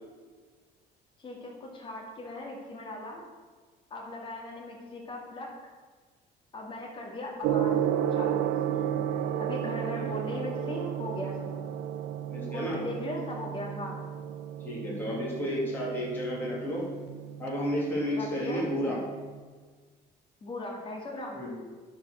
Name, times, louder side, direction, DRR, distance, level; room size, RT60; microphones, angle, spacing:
voice 1, 1.2-3.2 3.9-5.5 6.5-7.7 8.1-8.5 8.8-8.9 9.4-11.7 12.5-14.0 18.1-18.7 20.4-21.4, left 1 dB, 30° left, -2 dB, 2.2 m, -38 dB
Gong, 7.4-19.4, right 10 dB, 80° right, 0.7 m, -33 dB
voice 2, 12.3-12.8 14.6-16.8 17.4-19.0 21.3-21.6, equal, 10° left, -6 dB, 2.8 m, -32 dB
9.5 x 7.5 x 6.4 m, 1.4 s
cardioid pair, 175°, 18 cm